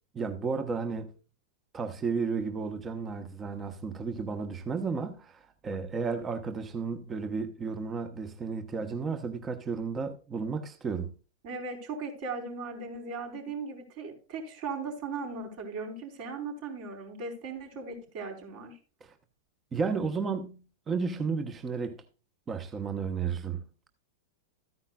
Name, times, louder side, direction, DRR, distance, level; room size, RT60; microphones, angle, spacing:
voice 1, 0.1-1.1 1.7-11.1 19.0-19.1 19.7-22.0 22.5-23.6, right 5 dB, 25° right, 1.2 m, -33 dB
voice 2, 11.4-18.8, right 4 dB, 55° right, 4.6 m, -38 dB
13.5 x 9.7 x 2.4 m
hypercardioid pair, 100°, 0 cm